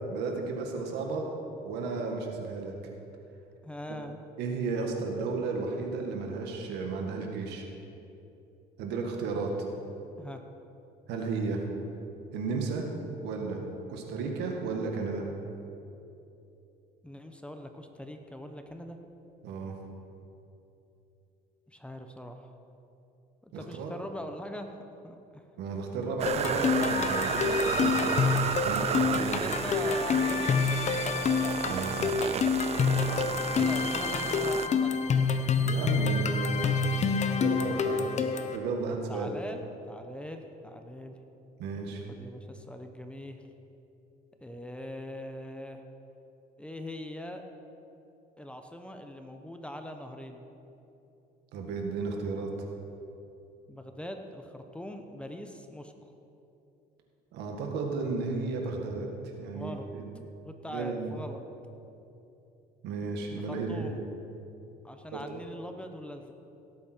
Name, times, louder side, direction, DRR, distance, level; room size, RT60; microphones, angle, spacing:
voice 1, 0.1-1.3 1.6-2.7 3.9-4.0 4.4-7.6 8.8-9.5 11.1-11.6 12.3-12.9 13.2-13.6 13.9-15.3 19.4-19.7 23.5-23.9 25.6-28.3 28.6-29.5 31.6-32.3 35.6-36.8 37.4-38.1 38.5-39.4 41.6-42.0 51.5-52.5 57.3-59.1 59.4-60.1 60.7-61.1 62.8-63.9 65.3-65.4, right 4 dB, 85° right, 2 dB, 1.8 m, -33 dB
voice 2, 3.6-4.2 10.2-10.4 17.0-19.0 21.7-22.5 23.4-24.8 25.0-25.5 29.2-31.0 33.5-35.2 38.9-41.2 42.1-43.4 44.4-45.8 46.6-47.4 48.4-50.4 53.7-56.1 59.5-59.9 60.4-61.4 63.3-64.1 64.8-66.3, left 1 dB, 5° left, 5 dB, 0.9 m, -42 dB
sound 1, 26.2-34.7, right 8 dB, 40° right, 0.5 m, -32 dB
sound 2, 26.3-38.6, left 5 dB, 45° left, 0.9 m, -27 dB
17.5 x 8.5 x 4.5 m, 2.8 s
cardioid pair, 110°, 17 cm